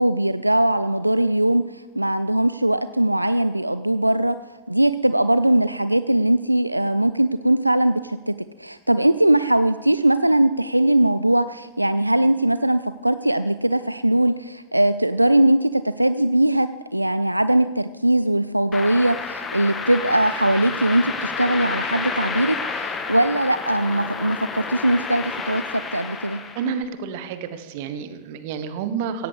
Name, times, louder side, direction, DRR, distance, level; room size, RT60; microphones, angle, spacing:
voice 1, 0.0-4.4 4.7-26.4, right 1 dB, 85° right, 13 dB, 0.3 m, -20 dB
sound 1, 18.7-26.8, left 4 dB, 20° left, 1.4 m, -30 dB
voice 2, 26.5-29.3, right 6 dB, 50° right, 11 dB, 1.2 m, -29 dB
16.5 x 16.5 x 3.3 m, 1.2 s
figure-of-eight pair, 90°, 0 cm